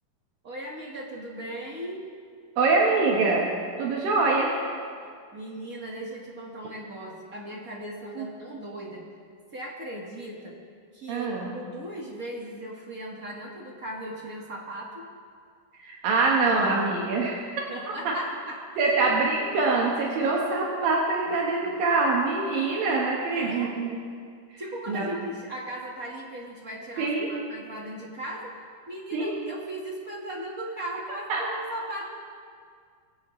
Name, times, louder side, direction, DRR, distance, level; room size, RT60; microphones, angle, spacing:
voice 1, 0.4-2.1 5.3-9.1 9.5-10.6 10.9-15.1 17.7-18.9 23.3-23.8 24.6-32.1, right 1 dB, 40° right, -2 dB, 1.3 m, -37 dB
voice 2, 2.6-3.5 3.8-4.5 8.2-8.3 11.1-11.5 15.8-17.7 18.0-18.1 18.8-24.0 24.9-25.0 27.0-27.4 29.1-29.3 31.3-31.4, right 3 dB, 75° right, -2 dB, 3.1 m, -24 dB
22.0 x 16.5 x 3.2 m, 2.1 s
omnidirectional pair, 4.1 m